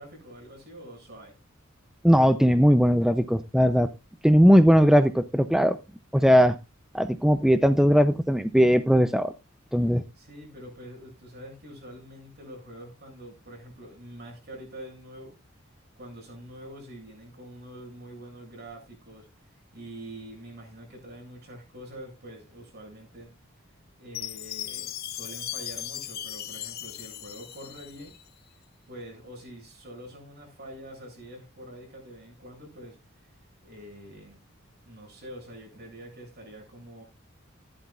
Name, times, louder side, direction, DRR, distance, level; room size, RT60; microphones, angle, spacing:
voice 1, 0.0-1.3 9.8-15.3 16.0-19.3 19.7-23.3 24.0-28.2 28.9-33.0 33.6-34.4 34.8-37.0, right 1 dB, 50° right, 7.7 m, -45 dB
voice 2, 2.0-3.9 4.2-5.8 6.1-6.6 6.9-9.3 9.7-10.0, equal, 5° right, 0.5 m, -19 dB
Chime, 24.1-28.3, left 12 dB, 50° left, 1.0 m, -37 dB
15.0 x 11.5 x 2.4 m
head